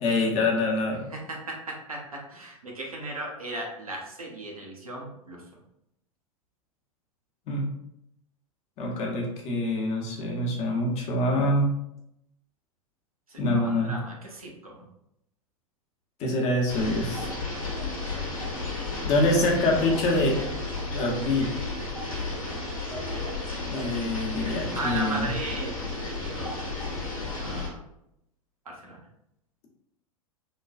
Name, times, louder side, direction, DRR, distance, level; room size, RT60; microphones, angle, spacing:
voice 1, 0.0-1.1 7.5-7.7 8.8-11.7 13.4-13.9 16.2-17.3 19.0-20.4 20.9-21.5 23.7-25.3, left 1 dB, 35° left, -1 dB, 0.8 m, -25 dB
voice 2, 1.1-5.4 13.3-14.8 24.7-25.7 26.2-26.6 27.4-27.8 28.7-29.0, right 1 dB, 85° right, -1 dB, 0.7 m, -36 dB
sound 1, 16.7-27.7, left 3 dB, 75° left, 0.9 m, -33 dB
3.1 x 2.2 x 2.3 m, 0.80 s
figure-of-eight pair, 90°, 18 cm